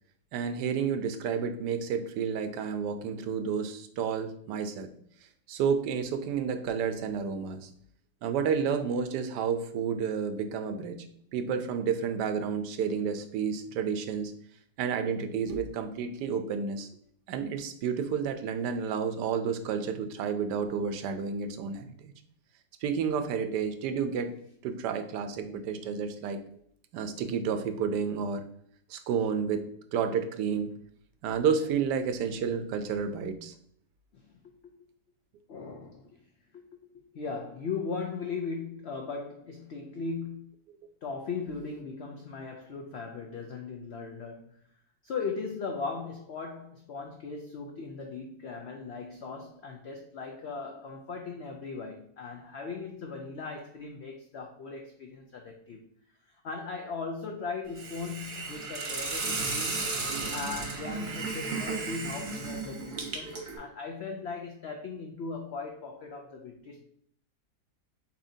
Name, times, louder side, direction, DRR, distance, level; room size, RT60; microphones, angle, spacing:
voice 1, 0.3-4.9 5.5-7.7 8.2-11.0 11.3-14.3 14.8-16.9 17.3-22.1 22.8-24.3 24.6-26.4 26.9-28.4 28.9-30.7 31.2-33.5, right 6 dB, 90° right, 8 dB, 1.2 m, -30 dB
voice 2, 34.1-34.7 35.5-36.2 36.5-40.5 41.0-44.6 45.0-55.8 56.3-59.9 60.3-66.8, left 4 dB, 80° left, 2 dB, 0.5 m, -38 dB
Hiss, 57.8-63.6, right 3 dB, 45° right, 0.9 m, -34 dB
7.1 x 2.7 x 2.7 m, 0.65 s
omnidirectional pair, 1.8 m